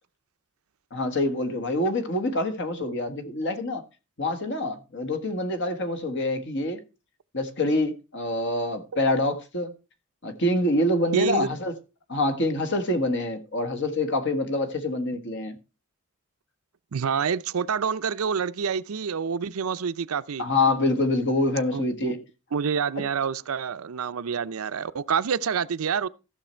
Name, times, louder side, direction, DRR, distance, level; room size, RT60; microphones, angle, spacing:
voice 1, 0.9-3.8 4.2-6.8 7.3-9.7 10.2-11.7 12.1-15.6 20.4-22.2 23.0-23.1, left 1 dB, 60° left, 1.6 m, -26 dB
voice 2, 11.1-11.5 16.9-20.4 21.7-22.1 22.5-26.1, right 6 dB, 85° right, 0.5 m, -27 dB
14.0 x 6.5 x 4.4 m
head